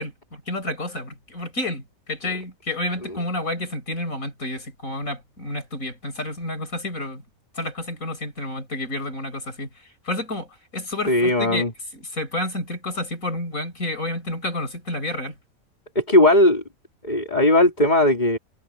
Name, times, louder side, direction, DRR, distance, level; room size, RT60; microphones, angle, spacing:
voice 1, 0.0-7.2 7.5-11.6 11.9-15.4, left 1 dB, 80° left, 7.1 m, -30 dB
voice 2, 11.1-11.7 16.0-16.6 17.0-18.4, left 1 dB, 30° left, 3.7 m, -17 dB
omnidirectional pair, 1.4 m